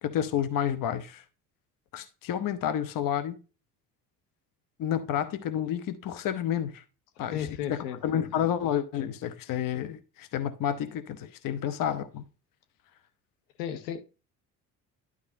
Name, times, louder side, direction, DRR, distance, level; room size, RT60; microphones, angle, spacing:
voice 1, 0.0-1.2 1.9-3.4 4.8-6.8 7.2-12.2, left 9 dB, 45° left, 1.0 m, -30 dB
voice 2, 7.3-8.5 13.6-14.0, left 9 dB, 70° left, 1.0 m, -35 dB
11.5 x 4.9 x 2.7 m
figure-of-eight pair, 55°, 47 cm